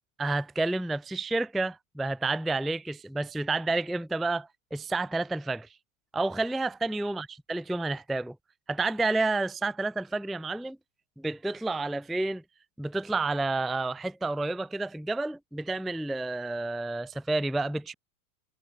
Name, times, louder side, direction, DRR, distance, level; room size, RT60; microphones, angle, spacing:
voice 1, 0.2-5.7 6.1-8.4 8.7-10.8 11.2-12.4 12.8-17.9, right 2 dB, ahead, 0.4 m, -30 dB
hypercardioid pair, 120°, 43 cm